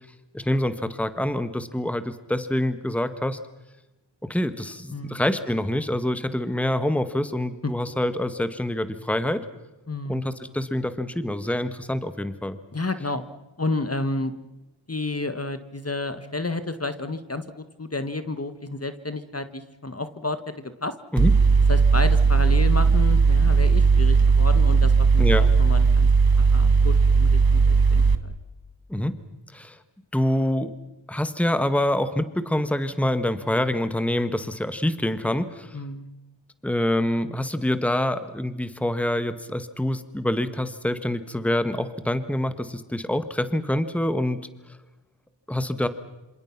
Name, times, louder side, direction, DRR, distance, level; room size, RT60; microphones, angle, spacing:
voice 1, 0.3-3.4 4.2-9.4 10.1-12.6 21.1-21.3 25.2-25.5 28.9-29.2 29.5-29.8 30.1-30.7 31.1-35.8 36.6-44.4 45.5-45.9, left 1 dB, 5° left, 11 dB, 1.6 m, -26 dB
voice 2, 4.9-5.2 9.9-10.2 12.7-13.2 13.6-14.3 14.9-20.9 21.7-26.1 26.4-28.3 35.7-36.1, left 2 dB, 30° left, 11 dB, 1.7 m, -31 dB
Mechanical fan, 21.2-28.1, right 4 dB, 50° right, 1.8 m, -17 dB
27.0 x 27.0 x 6.0 m, 1.0 s
cardioid pair, 50°, 46 cm